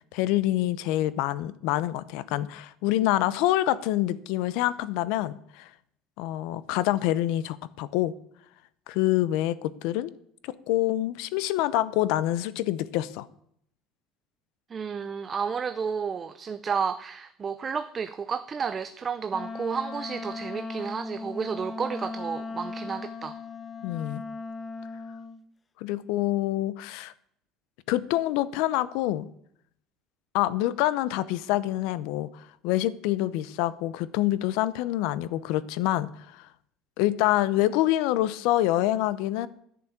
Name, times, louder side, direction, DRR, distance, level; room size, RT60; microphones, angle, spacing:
voice 1, 0.1-5.7 6.2-8.1 8.9-10.1 10.4-13.3 23.8-24.2 25.8-27.1 27.9-29.3 30.3-36.5 37.0-39.5, left 14 dB, 70° left, 0.7 m, -26 dB
voice 2, 14.7-23.4, right 6 dB, 25° right, 0.5 m, -31 dB
Wind instrument woodwind instrument, 19.3-25.4, left 3 dB, 20° left, 0.8 m, -38 dB
10.0 x 7.0 x 8.8 m
cardioid pair, 140°, 0 cm